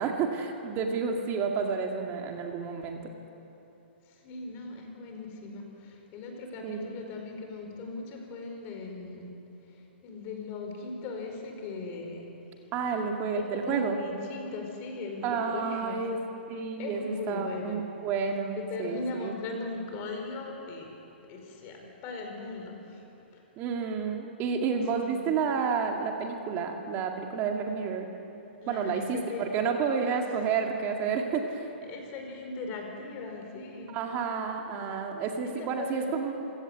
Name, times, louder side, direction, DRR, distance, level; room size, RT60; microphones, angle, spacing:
voice 1, 0.0-3.1 6.6-6.9 12.7-14.0 15.2-16.2 16.5-19.3 23.6-28.1 28.7-31.7 33.9-36.3, right 5 dB, 35° right, 3 dB, 2.1 m, -30 dB
voice 2, 4.2-9.3 10.0-12.3 13.4-16.0 16.8-17.8 18.5-20.9 21.3-22.8 24.9-25.2 28.6-29.5 31.8-33.9 35.4-36.1, left 3 dB, 35° left, 3 dB, 4.7 m, -38 dB
26.5 x 16.5 x 8.2 m, 2.9 s
hypercardioid pair, 130°, 6 cm